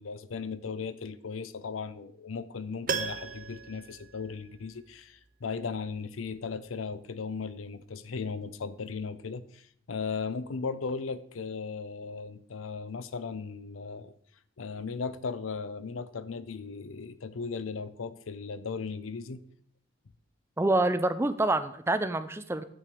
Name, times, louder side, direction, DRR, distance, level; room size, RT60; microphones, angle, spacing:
voice 1, 0.0-14.1 14.6-19.4, left 5 dB, 90° left, 0.6 m, -37 dB
Piano, 2.9-5.0 5.2-5.3, right 6 dB, 45° right, 0.7 m, -36 dB
voice 2, 20.6-22.6, right 2 dB, 10° right, 0.4 m, -27 dB
8.9 x 6.8 x 4.5 m
head